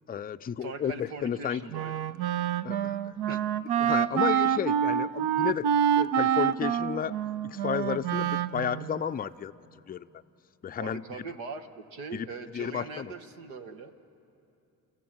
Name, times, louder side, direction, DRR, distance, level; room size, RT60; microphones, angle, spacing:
voice 1, 0.1-1.7 2.6-3.0 3.8-5.7 6.0-7.2 7.5-9.5 9.9-10.1 10.6-11.0 12.1-12.3 12.5-13.1, left 8 dB, 20° left, 10 dB, 0.5 m, -32 dB
voice 2, 0.6-2.1 3.3-3.4 10.8-13.9, right 4 dB, 75° right, 6 dB, 1.2 m, -41 dB
Wind instrument woodwind instrument, 1.7-9.0, right 9 dB, 55° right, 0.7 m, -27 dB
29.5 x 14.0 x 8.6 m, 2.7 s
figure-of-eight pair, 40°, 46 cm